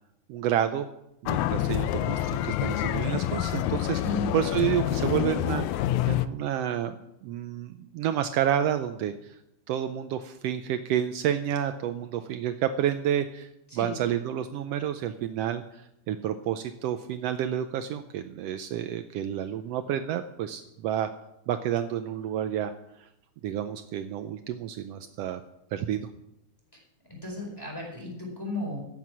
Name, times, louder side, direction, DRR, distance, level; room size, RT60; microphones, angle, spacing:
voice 1, 0.3-0.9 1.2-4.0 4.3-6.9 7.2-9.4 9.7-21.1 21.5-22.7 23.0-23.1 23.4-25.4 25.7-26.1, right 10 dB, 85° right, 9 dB, 1.4 m, -30 dB
sound 1, 1.2-6.3, left 13 dB, 80° left, 1.9 m, -27 dB
voice 2, 4.0-4.4 13.7-13.9 27.2-28.8, left 2 dB, 5° left, -1 dB, 4.3 m, -34 dB
16.0 x 7.5 x 6.2 m, 0.82 s
omnidirectional pair, 3.5 m